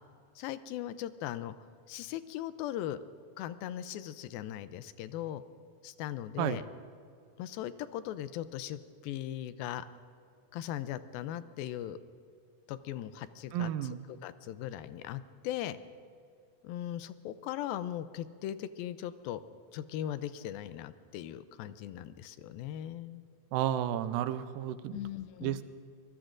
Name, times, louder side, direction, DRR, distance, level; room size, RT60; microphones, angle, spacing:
voice 1, 0.4-1.5 1.9-3.0 3.4-5.4 5.8-6.6 7.4-9.8 10.5-12.0 12.7-15.8 16.6-19.4 19.7-23.2 24.9-25.6, left 12 dB, 90° left, 13 dB, 2.5 m, -39 dB
voice 2, 13.5-14.0 23.5-25.0 25.4-25.6, right 11 dB, 80° right, 12 dB, 2.4 m, -32 dB
25.0 x 21.5 x 2.5 m, 2.4 s
omnidirectional pair, 4.1 m